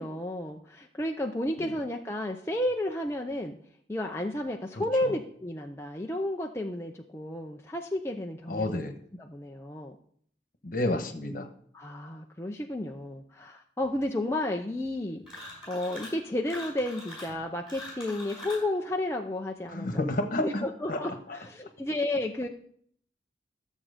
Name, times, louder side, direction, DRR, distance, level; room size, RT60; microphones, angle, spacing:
voice 1, 0.0-3.6 3.9-8.8 9.1-10.0 11.7-15.2 15.7-20.0 20.3-22.5, left 1 dB, 15° left, 1 dB, 0.6 m, -32 dB
voice 2, 4.8-5.1 8.5-8.9 10.6-11.5 19.7-20.6 20.9-21.0, left 1 dB, 50° left, 6 dB, 1.3 m, -30 dB
sound 1, 15.2-16.2 16.5-18.7, left 1 dB, 5° right, 5.4 m, -43 dB
13.5 x 7.3 x 5.1 m, 0.62 s
head